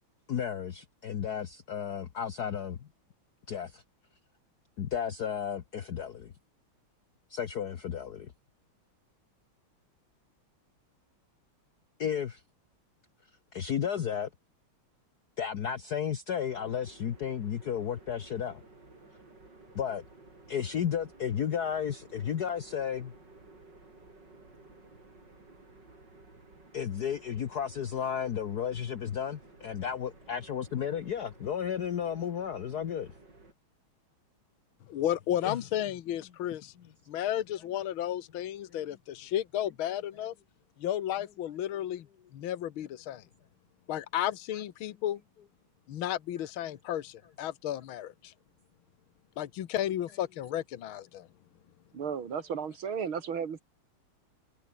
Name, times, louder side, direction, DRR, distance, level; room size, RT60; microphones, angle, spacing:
voice 1, 0.3-2.9 3.5-3.8 4.8-6.3 7.3-8.3 12.0-12.4 13.2-14.3 15.4-18.6 19.7-20.0 20.5-23.1 26.7-33.2 35.4-35.6 36.2-36.4 36.8-36.9 37.5-37.6 38.7-39.0 41.3-41.4 41.7-42.0 42.8-42.9 44.5-45.0 46.3-46.5 46.9-47.0 47.7-47.8 50.1-50.2, left 8 dB, 55° left, 1.5 m, -34 dB
sound 1, 16.5-33.5, right 3 dB, 55° right, 6.4 m, -55 dB
voice 2, 34.9-36.7 37.1-40.3 40.8-42.1 42.3-43.2 43.9-45.2 45.9-48.3 49.4-51.3, left 11 dB, 75° left, 1.9 m, -33 dB
voice 3, 51.9-53.6, right 7 dB, 75° right, 3.0 m, -34 dB
omnidirectional pair, 2.3 m